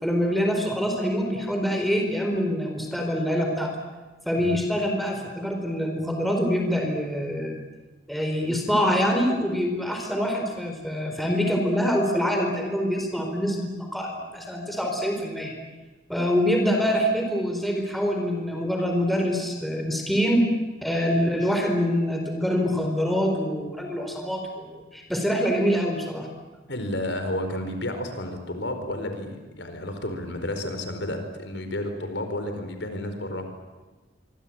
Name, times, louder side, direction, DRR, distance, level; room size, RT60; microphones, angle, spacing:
voice 1, 0.0-3.7 4.2-7.5 8.1-15.5 16.1-20.5 20.8-26.3, equal, ahead, 2 dB, 4.5 m, -25 dB
voice 2, 26.7-33.5, left 1 dB, 75° left, 7 dB, 4.7 m, -31 dB
25.5 x 24.5 x 8.9 m, 1.2 s
head